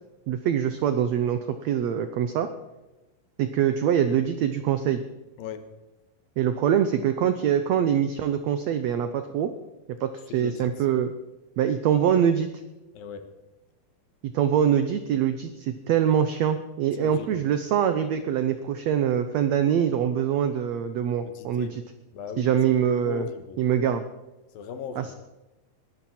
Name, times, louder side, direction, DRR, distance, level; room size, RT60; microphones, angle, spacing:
voice 1, 0.3-2.5 3.4-5.0 6.4-9.5 10.0-11.1 11.6-12.5 14.3-21.8 22.4-23.3 23.6-24.0 25.0-25.1, right 9 dB, 75° right, 9 dB, 1.6 m, -24 dB
voice 2, 10.3-10.7 12.9-13.3 17.0-17.4 21.2-21.8 22.1-22.5 23.0-23.6 24.5-25.1, left 7 dB, 80° left, 9 dB, 3.1 m, -38 dB
21.0 x 13.0 x 4.4 m, 1.1 s
omnidirectional pair, 4.0 m